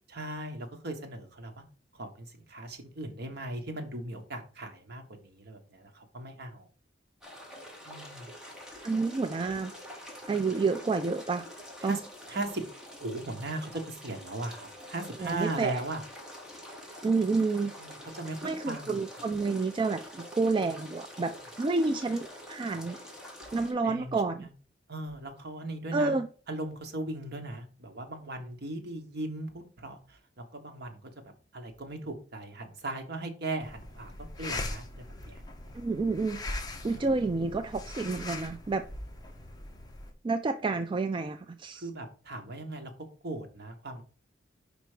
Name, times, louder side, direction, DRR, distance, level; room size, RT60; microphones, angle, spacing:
voice 1, 0.1-1.6 1.9-6.7 7.8-8.3 11.8-12.0 12.3-12.6 13.0-16.0 17.8-19.0 23.8-24.5 24.9-26.1 26.5-31.1 31.5-34.1 34.4-35.4 36.8-37.3 41.7-42.9 43.2-44.0, right 2 dB, 60° right, 1.2 m, -38 dB
sound 1, 7.2-23.7, left 1 dB, 5° right, 1.7 m, -46 dB
voice 2, 8.8-9.7 10.3-11.5 11.8-12.0 15.2-15.8 17.0-17.7 18.4-21.3 21.6-23.0 23.5-24.5 25.9-26.3 35.7-36.4 36.8-38.8 40.2-41.8, right 3 dB, 25° right, 0.3 m, -29 dB
sound 2, 33.6-40.1, left 2 dB, 20° left, 0.9 m, -40 dB
5.1 x 4.4 x 4.9 m
head